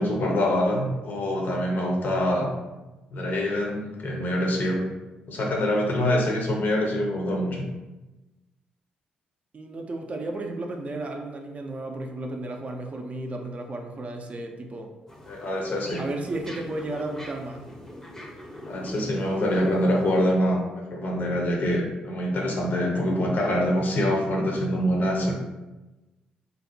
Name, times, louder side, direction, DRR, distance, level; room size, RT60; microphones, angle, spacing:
voice 1, 0.0-2.5 3.1-4.8 5.3-7.7 15.3-16.0 18.7-25.4, equal, 50° left, 0 dB, 0.6 m, -25 dB
voice 2, 9.5-14.9 16.0-17.7, right 2 dB, 40° right, 3 dB, 0.4 m, -33 dB
sound 1, 15.1-20.2, left 1 dB, 10° left, 0.6 m, -43 dB
2.6 x 2.0 x 2.6 m, 1.1 s
hypercardioid pair, 45°, 4 cm